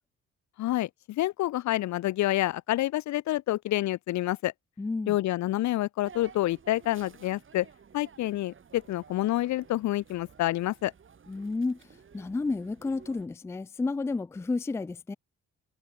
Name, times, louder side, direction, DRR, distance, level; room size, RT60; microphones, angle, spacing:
voice 1, 0.6-4.5 5.1-7.7 7.9-10.9, left 15 dB, 70° left, 0.6 m, -28 dB
voice 2, 4.8-5.2 11.3-11.8 12.1-15.1, left 3 dB, 10° left, 0.3 m, -31 dB
sound 1, 6.0-13.3, right 6 dB, 40° right, 3.2 m, -53 dB
cardioid pair, 90°, 30 cm